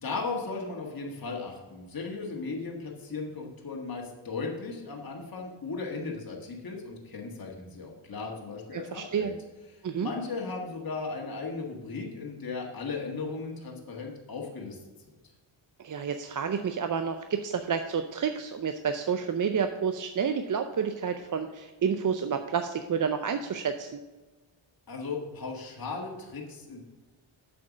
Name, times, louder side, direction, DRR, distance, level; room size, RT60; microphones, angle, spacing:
voice 1, 0.0-9.3 9.7-14.8 24.9-26.8, left 4 dB, 45° left, -1 dB, 1.6 m, -36 dB
voice 2, 8.7-9.3 9.8-10.1 15.8-24.0, right 6 dB, 40° right, 7 dB, 0.5 m, -30 dB
7.8 x 5.2 x 6.1 m, 1.2 s
wide cardioid pair, 95°, 49 cm